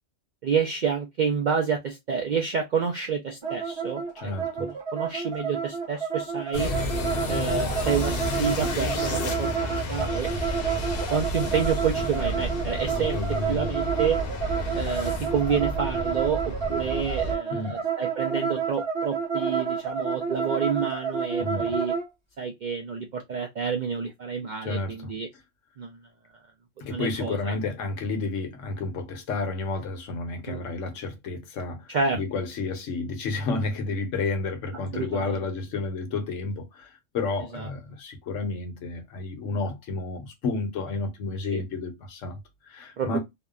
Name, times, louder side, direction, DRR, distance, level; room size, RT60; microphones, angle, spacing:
voice 1, 0.4-4.3 4.6-6.7 7.3-10.3 11.1-13.1 13.5-14.2 14.8-21.9 22.4-25.3 25.8-25.9 26.9-27.5 30.5-30.6 31.9-32.2 34.9-35.4 37.5-37.7 41.5-41.6 43.0-43.2, right 6 dB, 65° right, 0.4 m, -29 dB
sound 1, 3.4-22.1, right 6 dB, 25° right, 0.7 m, -30 dB
voice 2, 4.2-4.5 12.9-13.7 17.5-17.8 21.4-21.7 24.6-25.2 26.8-43.2, left 3 dB, 80° left, 1.1 m, -31 dB
sound 2, 6.5-17.4, left 1 dB, 55° left, 0.8 m, -31 dB
2.8 x 2.1 x 2.3 m
omnidirectional pair, 1.3 m